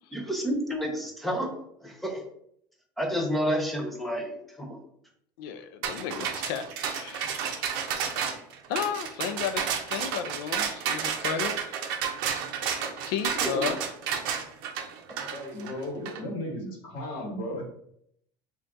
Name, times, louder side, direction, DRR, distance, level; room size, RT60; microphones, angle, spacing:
voice 1, 0.1-1.5 1.8-2.2 3.0-4.8 13.4-13.7, equal, ahead, 1 dB, 0.5 m, -30 dB
voice 2, 5.4-7.8 8.7-11.5 13.1-13.8, left 7 dB, 80° left, 10 dB, 0.5 m, -33 dB
sound 1, 5.8-16.2, right 7 dB, 85° right, 0.6 m, -31 dB
voice 3, 15.3-17.6, left 1 dB, 50° left, 0 dB, 1.2 m, -35 dB
4.0 x 2.4 x 3.4 m, 0.71 s
cardioid pair, 170°, 11 cm